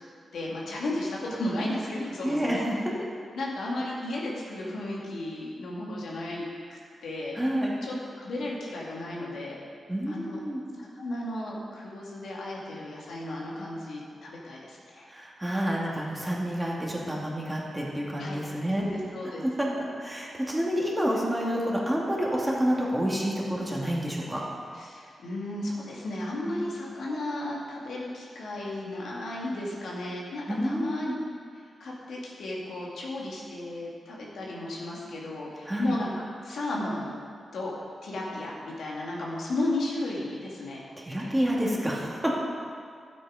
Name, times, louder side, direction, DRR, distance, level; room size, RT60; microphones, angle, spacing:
voice 1, 0.3-2.6 3.3-7.4 7.8-9.6 10.1-10.4 10.8-15.1 18.2-18.4 18.8-19.4 24.7-31.1 31.5-36.1 36.4-37.1 37.5-37.8 38.0-40.8 41.2-41.6, left 1 dB, 80° left, -4 dB, 2.5 m, -34 dB
voice 2, 2.2-2.6 7.4-7.7 9.9-10.6 15.1-18.8 19.4-24.4 26.5-26.6 30.5-31.2 35.7-35.9 41.0-42.3, equal, 10° right, -4 dB, 2.6 m, -28 dB
12.5 x 8.6 x 5.1 m, 2.2 s
cardioid pair, 75°, 0 cm